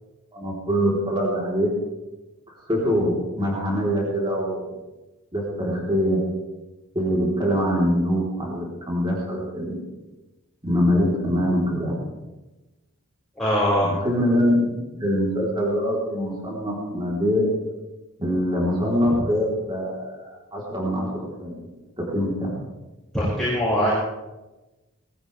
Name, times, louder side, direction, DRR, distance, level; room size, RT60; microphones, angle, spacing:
voice 1, 0.3-1.7 2.7-4.7 5.3-6.2 6.9-9.8 10.6-12.0 13.8-17.5 18.2-21.6 22.0-22.6, equal, 20° right, -4 dB, 3.6 m, -24 dB
voice 2, 13.4-13.9 23.1-23.9, equal, ahead, -10 dB, 5.8 m, -21 dB
20.0 x 15.5 x 3.4 m, 1.1 s
head